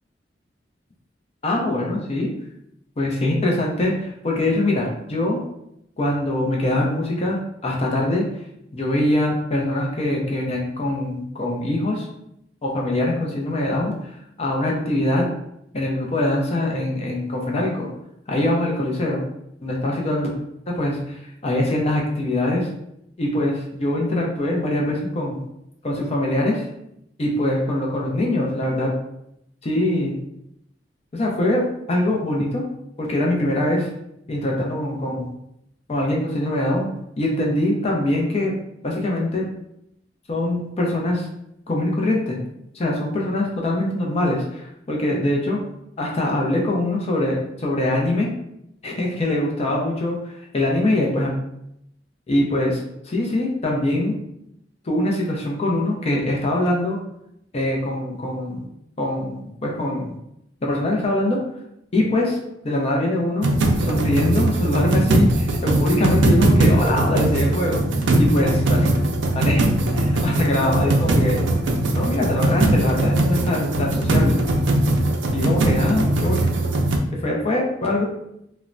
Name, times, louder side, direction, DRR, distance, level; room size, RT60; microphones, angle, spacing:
voice 1, 1.4-2.3 3.0-5.4 6.0-8.3 8.7-12.1 12.6-15.2 15.7-17.9 18.3-19.2 19.6-20.3 20.8-22.7 23.2-25.4 25.8-26.7 27.2-28.9 29.6-30.2 31.1-32.6 33.0-33.9 34.3-35.3 35.9-36.9 37.2-38.5 38.8-39.5 40.3-41.3 41.7-42.4 42.7-45.6 46.0-48.3 48.8-50.2 50.5-51.3 52.3-54.1 54.9-57.0 57.5-58.6 59.0-60.2 60.6-61.4 61.9-62.4 62.6-63.5 63.8-67.8 68.2-68.9 69.3-69.6 69.9-71.4 71.9-74.4 75.3-76.4 77.2-78.1, left 1 dB, 35° left, -1 dB, 0.5 m, -23 dB
sound 1, 63.4-77.0, right 1 dB, 75° right, 0.4 m, -20 dB
3.0 x 2.1 x 2.5 m, 0.78 s
head